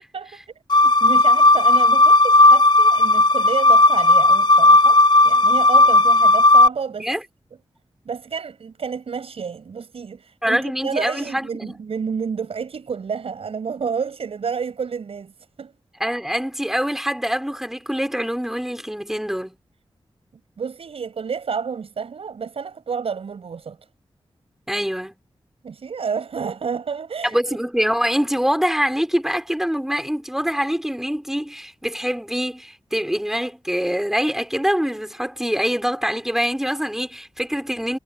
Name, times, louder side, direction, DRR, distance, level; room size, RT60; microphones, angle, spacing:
sound 1, 0.7-6.7, left 2 dB, 50° left, 1.2 m, -14 dB
voice 1, 0.8-7.1 8.0-15.7 20.6-23.8 25.6-27.4, right 6 dB, 85° right, 7.7 m, -30 dB
voice 2, 10.4-11.7 16.0-19.6 24.7-25.1 27.2-38.0, equal, 5° right, 5.5 m, -24 dB
wide cardioid pair, 80°, 10 cm